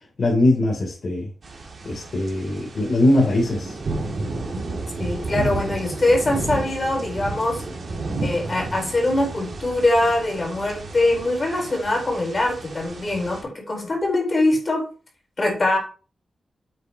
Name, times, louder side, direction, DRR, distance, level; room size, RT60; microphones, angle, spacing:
voice 1, 0.2-1.3 1.8-3.7, left 1 dB, 50° left, -2 dB, 3.1 m, -21 dB
sound 1, 1.4-13.4, right 3 dB, 55° right, 2.6 m, -32 dB
voice 2, 5.0-7.6 8.2-14.9 15.4-15.8, left 2 dB, 35° left, 0 dB, 4.2 m, -22 dB
9.7 x 8.1 x 3.0 m, 0.35 s
wide cardioid pair, 125°, 0 cm